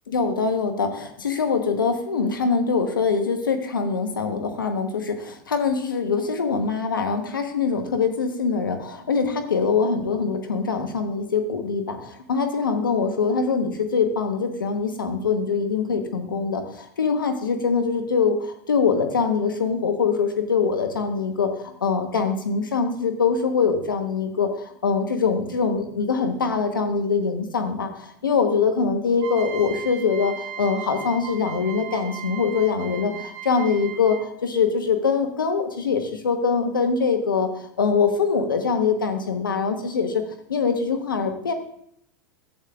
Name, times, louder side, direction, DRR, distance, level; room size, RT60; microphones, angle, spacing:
voice 1, 0.1-21.5 21.8-24.5 24.8-37.5 37.8-40.2 40.5-41.5, left 5 dB, 90° left, 6 dB, 1.0 m, -23 dB
sound 1, 29.2-34.4, right 9 dB, 50° right, 0.9 m, -37 dB
11.5 x 8.2 x 2.4 m, 0.69 s
hypercardioid pair, 95°, 11 cm